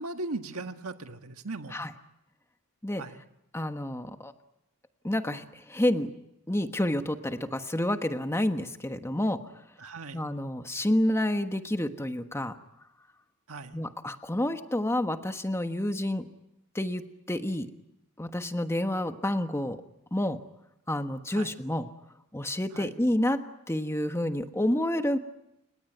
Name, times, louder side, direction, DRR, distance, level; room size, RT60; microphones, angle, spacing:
voice 1, 0.0-1.8 3.0-3.2 9.8-10.3 13.5-13.7 21.3-21.5 22.7-22.9, right 2 dB, 70° right, 7 dB, 1.6 m, -38 dB
voice 2, 3.5-4.3 5.0-6.1 6.5-9.4 10.1-12.5 13.7-16.2 16.7-17.0 17.3-17.7 18.2-19.8 20.1-20.4 20.9-21.9 22.3-23.4 23.7-25.2, left 1 dB, 10° left, 8 dB, 1.3 m, -29 dB
30.0 x 18.0 x 9.3 m, 0.86 s
head